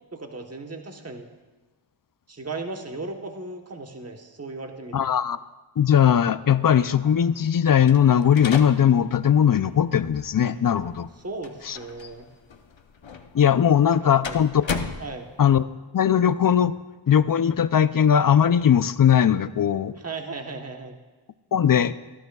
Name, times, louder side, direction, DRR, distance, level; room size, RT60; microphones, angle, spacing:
voice 1, 0.1-1.3 2.3-5.0 11.2-12.3 14.2-14.4 15.0-15.3 19.9-21.0, right 3 dB, 30° right, 4 dB, 1.2 m, -36 dB
voice 2, 4.9-5.4 5.8-11.1 11.6-11.8 13.3-14.6 15.4-15.6 15.9-16.7 17.1-19.9 21.5-21.9, left 9 dB, 45° left, 14 dB, 0.5 m, -19 dB
sound 1, 7.8-15.6, left 5 dB, 70° left, 0.9 m, -37 dB
18.0 x 12.0 x 2.3 m, 1.3 s
wide cardioid pair, 45°, 48 cm